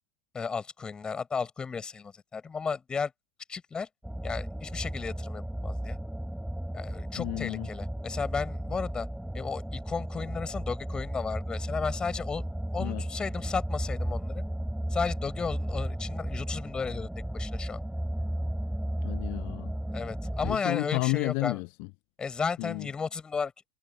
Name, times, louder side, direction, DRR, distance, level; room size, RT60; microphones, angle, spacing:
voice 1, 0.3-3.1 3.5-3.9 4.2-6.0 6.7-9.1 9.3-12.5 12.7-14.4 14.9-17.1 17.3-17.8 19.9-21.6 22.2-23.5, left 5 dB, 20° left, 6.3 m, -34 dB
sound 1, 4.0-20.6, right 1 dB, ahead, 3.8 m, -34 dB
voice 2, 7.2-7.7 12.8-13.0 19.0-19.7 20.4-21.9 22.6-22.9, left 39 dB, 45° left, 1.1 m, -31 dB
figure-of-eight pair, 85°, 5 cm